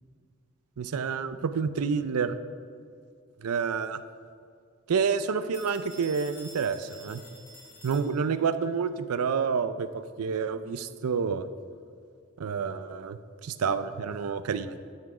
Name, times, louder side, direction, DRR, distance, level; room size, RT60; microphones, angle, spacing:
voice 1, 0.8-2.4 3.4-4.0 4.9-7.2 7.8-11.5 12.4-14.8, right 6 dB, 90° right, 13 dB, 0.5 m, -29 dB
Telephone, 5.5-8.5, left 1 dB, 15° left, 1.3 m, -49 dB
13.0 x 6.1 x 4.8 m, 2.2 s
head